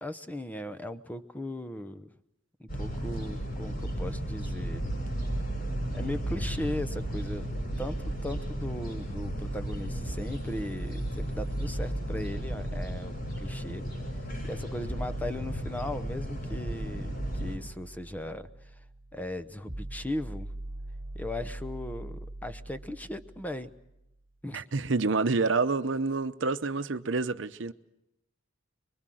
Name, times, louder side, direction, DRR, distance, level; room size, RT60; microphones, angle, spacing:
voice 1, 0.0-2.1 2.6-4.9 5.9-7.5 7.8-13.8 14.4-18.7 19.1-20.5 21.1-23.7 24.4-24.6, left 1 dB, 10° left, 0.8 m, -37 dB
sound 1, 2.7-17.6, right 1 dB, 50° left, 6.5 m, -34 dB
sound 2, 10.1-24.1, right 1 dB, 30° right, 1.9 m, -43 dB
voice 2, 24.5-27.7, right 3 dB, 70° right, 0.8 m, -28 dB
25.0 x 23.0 x 7.7 m
head